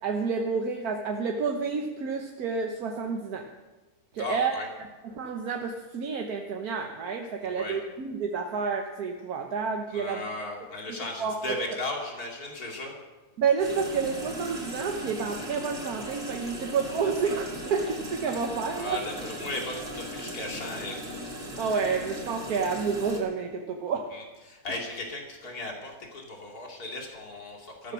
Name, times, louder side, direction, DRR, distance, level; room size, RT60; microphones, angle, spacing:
voice 1, 0.0-3.5 4.1-4.5 5.0-10.3 10.8-11.4 13.4-19.0 21.6-24.1 27.8-27.9, right 5 dB, 80° right, 3 dB, 1.6 m, -29 dB
voice 2, 4.2-4.7 7.4-7.8 9.9-12.9 18.7-21.0 24.1-27.9, left 2 dB, 80° left, 0 dB, 3.3 m, -36 dB
sound 1, 13.6-23.2, equal, 35° right, 2.9 m, -38 dB
14.5 x 14.0 x 6.2 m, 1.2 s
omnidirectional pair, 1.6 m